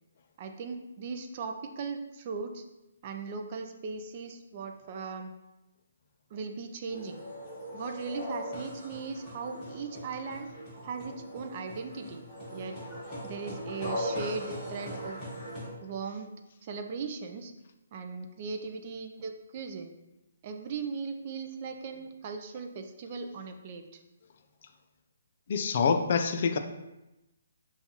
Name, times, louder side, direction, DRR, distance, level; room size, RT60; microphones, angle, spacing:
voice 1, 0.4-2.6 3.0-5.3 6.3-7.2 7.7-10.5 10.8-12.2 12.5-12.8 13.2-15.2 15.8-16.3 16.6-17.5 17.9-19.9 20.4-24.0, right 5 dB, 30° right, 5 dB, 0.3 m, -38 dB
sound 1, 6.9-15.7, equal, 5° left, 1.2 m, -39 dB
voice 2, 25.5-26.6, left 5 dB, 45° left, 7 dB, 0.3 m, -26 dB
5.6 x 2.3 x 2.8 m, 0.97 s
hypercardioid pair, 170°, 0 cm